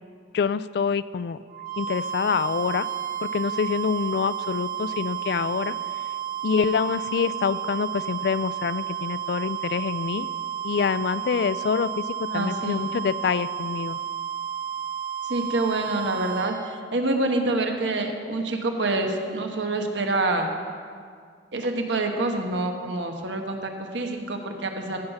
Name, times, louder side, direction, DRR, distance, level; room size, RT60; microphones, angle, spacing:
voice 1, 0.3-1.4 1.8-2.9 3.2-5.7 6.4-10.3 10.6-14.0, left 6 dB, 60° left, 16 dB, 0.3 m, -26 dB
sound 1, 1.5-16.8, right 9 dB, 45° right, 0.7 m, -32 dB
voice 2, 12.3-12.8 15.3-20.5 21.5-25.0, right 2 dB, 90° right, 4 dB, 1.1 m, -27 dB
15.0 x 5.7 x 5.9 m, 2.1 s
head